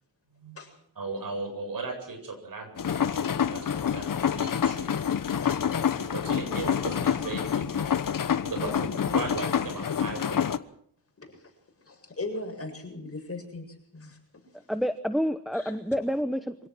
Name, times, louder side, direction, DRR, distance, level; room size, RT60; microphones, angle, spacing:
voice 1, 0.9-4.9 6.0-8.0 8.4-10.4, right 3 dB, 55° right, 6 dB, 7.9 m, -37 dB
sound 1, 2.8-10.6, left 8 dB, 55° left, 1.2 m, -27 dB
voice 2, 11.9-13.7 13.9-14.2 15.5-15.7, left 2 dB, 35° left, 4 dB, 7.6 m, -38 dB
voice 3, 14.7-16.7, equal, ahead, 10 dB, 1.0 m, -29 dB
26.0 x 17.5 x 6.3 m, 0.65 s
cardioid pair, 95°, 40 cm